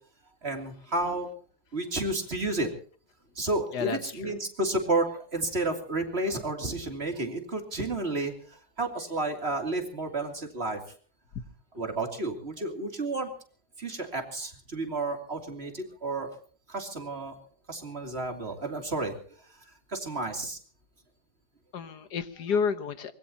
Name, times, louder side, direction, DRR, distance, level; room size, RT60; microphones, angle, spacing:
voice 1, 0.4-1.3 1.7-2.7 3.3-10.8 11.7-13.3 13.8-16.3 16.7-17.4 17.7-19.1 19.9-20.6, right 2 dB, 40° right, 4 dB, 3.2 m, -31 dB
voice 2, 3.7-4.3 21.7-23.1, left 6 dB, 85° left, 11 dB, 1.8 m, -30 dB
24.0 x 21.0 x 2.9 m, 0.44 s
omnidirectional pair, 1.7 m